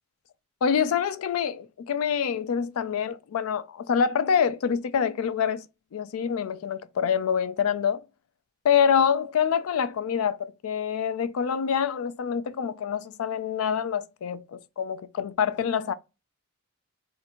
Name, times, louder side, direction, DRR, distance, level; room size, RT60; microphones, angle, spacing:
voice 1, 0.6-5.7 5.9-8.0 8.6-15.9, left 7 dB, 75° left, 0.4 m, -26 dB
3.7 x 2.4 x 4.3 m
head